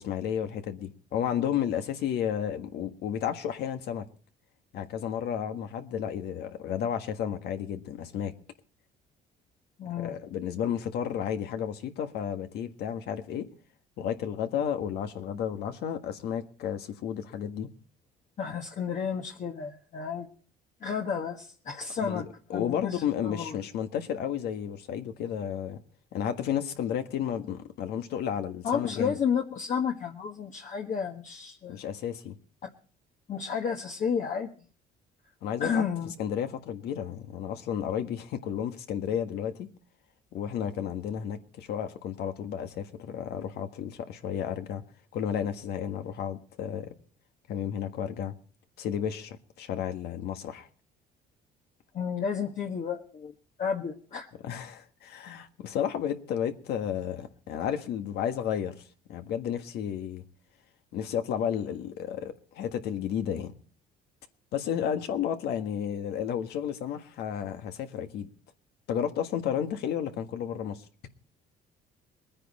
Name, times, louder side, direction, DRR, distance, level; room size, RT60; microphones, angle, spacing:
voice 1, 0.0-4.1 4.7-8.3 10.0-13.5 14.0-17.7 22.0-22.2 22.5-25.8 26.1-29.2 31.7-32.4 35.4-35.8 36.2-39.7 40.3-44.8 45.1-46.9 47.5-48.3 48.8-50.7 54.4-58.8 59.1-60.2 60.9-63.5 64.5-68.3 68.9-70.8, left 9 dB, 75° left, 1.6 m, -32 dB
voice 2, 9.8-10.2 18.4-20.3 20.8-22.3 22.5-23.6 28.6-31.8 32.6-32.7 33.3-34.5 35.6-36.1 51.9-54.3, left 6 dB, 50° left, 1.5 m, -32 dB
21.5 x 9.8 x 4.2 m
cardioid pair, 110°, 17 cm